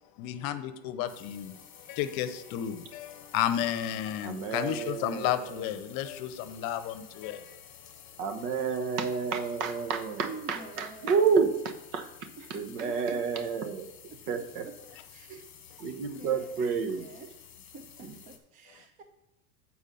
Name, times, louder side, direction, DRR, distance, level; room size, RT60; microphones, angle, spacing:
voice 1, 0.2-7.9, left 11 dB, 45° left, 0.8 m, -33 dB
sound 1, 1.1-18.4, left 8 dB, 25° left, 1.3 m, -52 dB
voice 2, 4.2-5.8 8.2-13.9 14.3-14.7 15.8-17.1 18.0-18.2, right 5 dB, 70° right, 1.4 m, -30 dB
voice 3, 10.2-11.2 12.4-12.5 12.8-13.2 14.6-14.7 15.1-15.5 15.8-17.3 17.7-19.0, right 4 dB, 20° right, 0.3 m, -47 dB
9.0 x 4.6 x 6.9 m
supercardioid pair, 135°, 48 cm